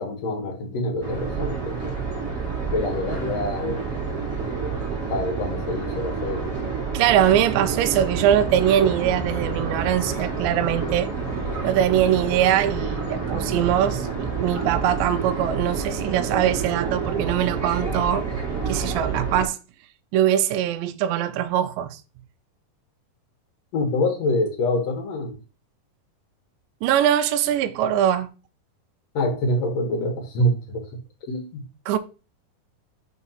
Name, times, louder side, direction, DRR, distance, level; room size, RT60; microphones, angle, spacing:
voice 1, 0.0-2.0 2.7-3.8 5.1-6.6 23.7-25.3 29.1-30.8 31.3-31.6, left 1 dB, 60° left, 1.8 m, -26 dB
sound 1, 1.0-19.5, right 5 dB, 25° right, 1.9 m, -28 dB
voice 2, 6.9-11.1 11.6-18.3 18.7-19.6 20.1-22.0 26.8-28.3 31.9-32.0, right 10 dB, 80° right, 2.1 m, -22 dB
6.0 x 3.3 x 5.6 m
omnidirectional pair, 4.5 m